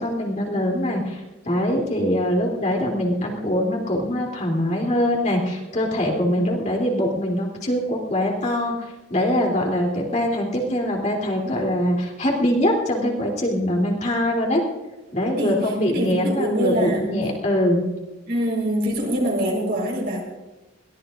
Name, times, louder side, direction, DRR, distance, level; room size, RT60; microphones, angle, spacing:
voice 1, 0.0-14.6 15.1-17.9, left 1 dB, 35° left, -1 dB, 3.2 m, -23 dB
voice 2, 15.4-17.1 18.3-20.2, equal, 50° right, -1 dB, 4.5 m, -24 dB
22.0 x 17.5 x 2.6 m, 1.1 s
head